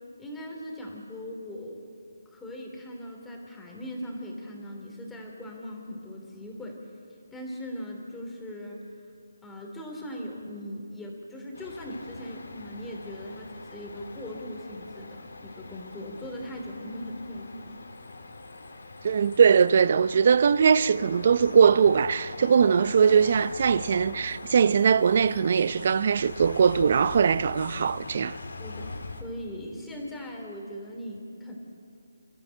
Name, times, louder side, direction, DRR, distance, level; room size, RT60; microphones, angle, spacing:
voice 1, 0.2-1.8 2.3-6.9 7.3-8.8 9.4-17.8 28.6-31.5, equal, 5° left, 3.1 m, -39 dB
sound 1, 11.5-29.2, left 3 dB, 75° left, 3.2 m, -42 dB
voice 2, 19.0-28.4, right 6 dB, 45° right, 0.6 m, -21 dB
28.0 x 14.0 x 8.9 m
figure-of-eight pair, 155°, 0 cm